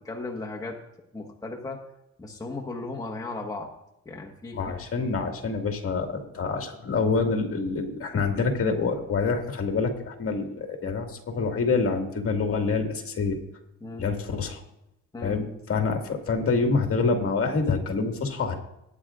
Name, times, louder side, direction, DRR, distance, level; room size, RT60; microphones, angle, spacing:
voice 1, 0.0-0.8 1.1-1.8 2.2-3.7 4.0-5.0 13.8-14.0 15.1-15.6, left 2 dB, 10° left, -1 dB, 1.4 m, -36 dB
voice 2, 4.5-13.4 14.0-14.6 15.2-18.5, left 4 dB, 50° left, 3 dB, 2.0 m, -26 dB
20.0 x 9.6 x 2.5 m, 0.86 s
cardioid pair, 90°, 30 cm